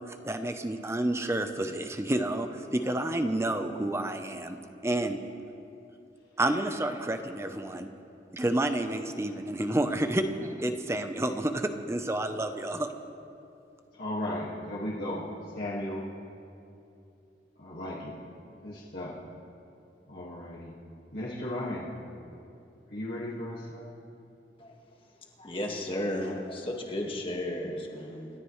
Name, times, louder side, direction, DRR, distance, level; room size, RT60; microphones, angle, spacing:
voice 1, 0.0-4.6 4.8-5.2 6.4-7.9 8.3-12.9, right 1 dB, 15° right, 7 dB, 0.7 m, -30 dB
voice 2, 13.9-15.3 15.6-16.0 17.6-18.2 18.6-19.2 20.1-20.8 21.1-21.9 22.9-23.9, left 1 dB, 60° left, -7 dB, 2.0 m, -35 dB
voice 3, 25.4-28.3, left 1 dB, 30° left, 0 dB, 1.8 m, -34 dB
28.0 x 13.0 x 3.2 m, 2.7 s
head